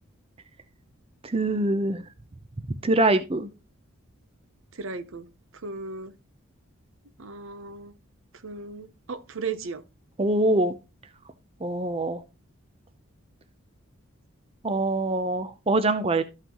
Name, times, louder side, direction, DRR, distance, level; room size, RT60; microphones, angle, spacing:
voice 1, 1.2-2.0 2.8-3.5 10.2-10.7 11.6-12.2 14.6-16.2, right 2 dB, 25° right, 0.6 m, -24 dB
voice 2, 4.8-5.3 5.6-6.1 7.2-7.9 8.4-9.8, right 4 dB, 65° right, 0.7 m, -36 dB
13.0 x 5.8 x 3.0 m
head